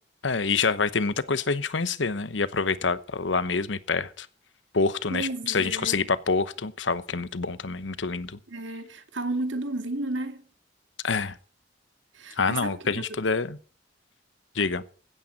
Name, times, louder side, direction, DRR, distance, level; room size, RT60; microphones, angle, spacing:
voice 1, 0.2-4.3 4.7-8.4 11.0-11.3 12.4-13.6 14.5-14.8, left 4 dB, 75° left, 1.0 m, -26 dB
voice 2, 5.1-6.0 8.5-10.4 12.1-13.0, right 2 dB, 85° right, 2.2 m, -32 dB
16.5 x 12.5 x 4.1 m
head